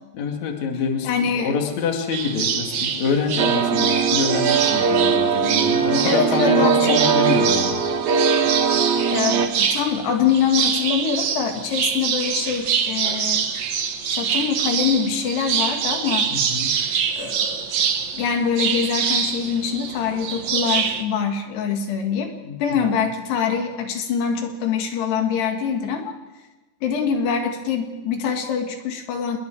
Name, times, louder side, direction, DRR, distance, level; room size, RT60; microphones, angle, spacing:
voice 1, 0.1-7.8 16.3-16.7 22.4-22.9, left 5 dB, 50° left, 2 dB, 3.1 m, -26 dB
voice 2, 1.0-1.5 6.1-7.0 9.1-13.5 14.0-16.3 17.2-17.8 18.2-22.3 22.6-26.2 26.8-29.4, left 6 dB, 75° left, 4 dB, 3.9 m, -24 dB
sound 1, 2.1-21.0, right 7 dB, 90° right, 1.3 m, -25 dB
sound 2, 3.4-9.5, right 6 dB, 65° right, 2.0 m, -20 dB
28.0 x 21.5 x 4.7 m, 1.1 s
omnidirectional pair, 4.9 m